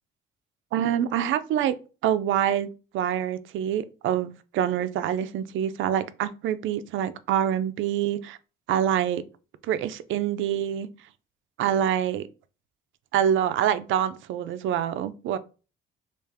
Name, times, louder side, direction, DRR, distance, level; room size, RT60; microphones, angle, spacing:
voice 1, 0.7-1.7 2.0-2.7 2.9-8.4 8.7-9.2 9.7-10.9 11.6-12.2 13.1-15.4, right 10 dB, 75° right, 0.4 m, -26 dB
3.4 x 2.4 x 3.3 m
cardioid pair, 90°, 20 cm